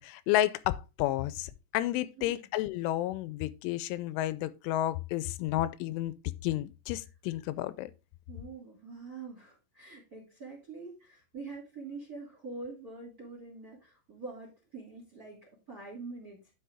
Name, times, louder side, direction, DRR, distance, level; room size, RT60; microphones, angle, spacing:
voice 1, 0.0-6.1 6.4-7.9, left 14 dB, 85° left, 3.0 m, -31 dB
voice 2, 2.2-2.5 8.3-16.5, right 3 dB, 30° right, 1.8 m, -45 dB
10.0 x 5.7 x 3.5 m
omnidirectional pair, 5.5 m